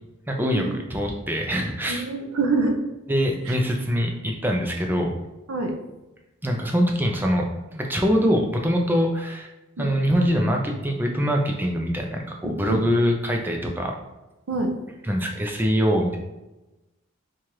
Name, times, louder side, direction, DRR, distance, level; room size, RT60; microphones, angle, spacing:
voice 1, 0.3-2.0 3.1-5.1 6.4-7.5 7.7-9.5 9.8-14.0 15.0-16.2, equal, 10° right, 1 dB, 0.4 m, -23 dB
voice 2, 1.9-2.8 3.5-3.6 5.5-5.7 9.8-9.9 12.4-12.9 14.5-14.7, right 3 dB, 75° right, 3 dB, 0.5 m, -25 dB
4.7 x 2.4 x 2.9 m, 1.0 s
head